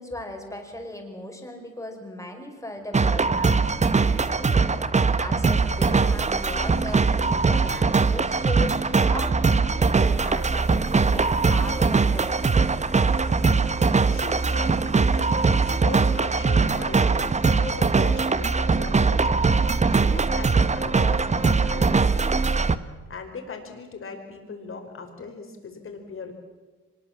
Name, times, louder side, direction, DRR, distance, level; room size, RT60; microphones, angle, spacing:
voice 1, 0.0-13.1, left 1 dB, 10° left, 3 dB, 5.3 m, -38 dB
sound 1, 2.9-22.8, right 4 dB, 25° right, 1.0 m, -21 dB
voice 2, 14.1-19.2 19.5-22.1 23.1-26.3, left 4 dB, 45° left, 4 dB, 4.8 m, -39 dB
24.0 x 21.0 x 7.5 m, 1.3 s
cardioid pair, 90°, 30 cm